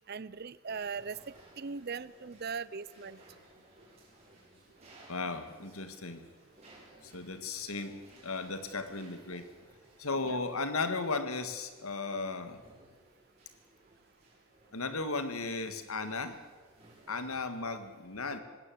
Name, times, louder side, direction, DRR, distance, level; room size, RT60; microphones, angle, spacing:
voice 1, 0.1-3.2 10.2-10.4, right 5 dB, 45° right, 19 dB, 0.6 m, -39 dB
sound 1, 0.7-17.5, right 1 dB, 30° right, 7.7 m, -60 dB
voice 2, 5.1-6.2 7.0-9.5 10.0-12.6 14.7-16.4 17.1-18.4, left 3 dB, 80° left, 9 dB, 1.9 m, -36 dB
19.5 x 17.0 x 7.8 m, 1.3 s
head